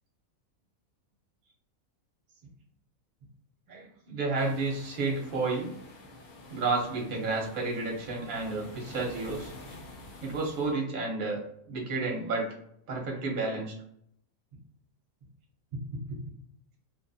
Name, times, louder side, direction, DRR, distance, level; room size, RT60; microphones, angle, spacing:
voice 1, 3.7-5.7 6.5-9.5 10.2-11.4 11.7-12.5 12.9-13.7, right 3 dB, 45° right, -1 dB, 0.9 m, -31 dB
sound 1, 4.4-10.8, left 2 dB, 55° left, 0.9 m, -48 dB
2.8 x 2.5 x 2.6 m, 0.70 s
omnidirectional pair, 1.5 m